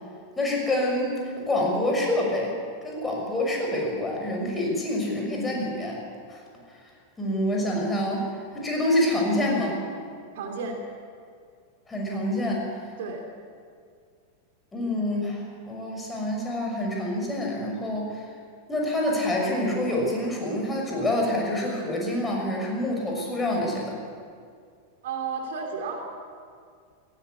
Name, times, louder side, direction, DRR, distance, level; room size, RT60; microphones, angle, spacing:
voice 1, 0.4-2.5 2.8-6.0 6.3-6.4 6.7-6.9 7.2-9.8 11.9-12.7 14.7-18.3 18.7-24.0, left 1 dB, 10° left, -1 dB, 6.1 m, -27 dB
voice 2, 10.3-10.8 13.0-13.2 25.0-26.0, right 5 dB, 55° right, 2 dB, 3.1 m, -32 dB
18.0 x 17.5 x 8.5 m, 2.2 s
figure-of-eight pair, 90°, 0 cm